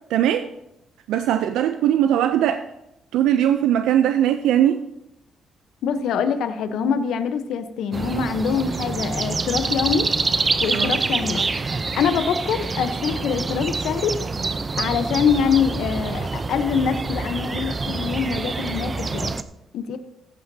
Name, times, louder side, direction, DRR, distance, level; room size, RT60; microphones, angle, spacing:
voice 1, 0.1-0.5 1.1-2.7 3.1-4.8 10.7-10.9, right 10 dB, 90° right, 9 dB, 0.4 m, -20 dB
voice 2, 5.8-10.1 10.6-11.6 12.0-14.1 14.8-19.3 19.7-20.0, left 6 dB, 80° left, 10 dB, 0.9 m, -24 dB
sound 1, 7.9-19.4, right 4 dB, 30° right, 0.6 m, -26 dB
14.5 x 11.0 x 2.8 m, 0.88 s
cardioid pair, 90°, 0 cm